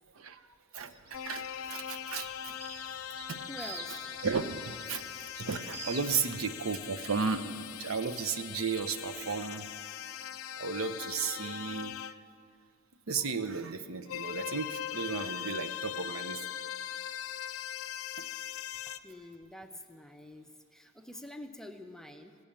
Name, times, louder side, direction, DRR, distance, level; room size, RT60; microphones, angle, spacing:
voice 1, 0.7-2.5 3.3-3.4 4.2-5.0 5.4-9.7 10.6-12.0 13.1-16.4, right 5 dB, 80° right, 10 dB, 0.6 m, -34 dB
sound 1, 0.8-9.2, right 3 dB, 50° right, 1.4 m, -50 dB
sound 2, 1.1-12.2 14.1-19.0, left 10 dB, 85° left, 0.4 m, -41 dB
voice 2, 3.5-4.1 18.9-22.4, left 1 dB, ahead, 6 dB, 0.5 m, -47 dB
16.0 x 6.3 x 8.8 m, 2.3 s
head